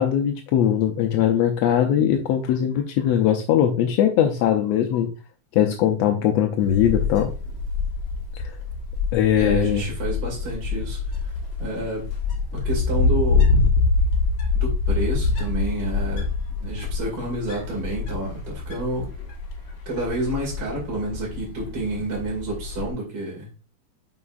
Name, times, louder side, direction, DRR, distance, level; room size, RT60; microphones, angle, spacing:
voice 1, 0.0-5.1 5.5-7.3 8.4-8.6 9.1-9.8, left 10 dB, 75° left, 1.6 m, -20 dB
Wind, 6.6-22.9, left 4 dB, 55° left, 2.2 m, -25 dB
voice 2, 9.4-11.0 11.6-12.1 12.5-13.5 14.5-16.3 16.6-19.1 19.9-23.5, right 1 dB, 40° right, 2.7 m, -29 dB
9.5 x 5.8 x 2.5 m
omnidirectional pair, 3.5 m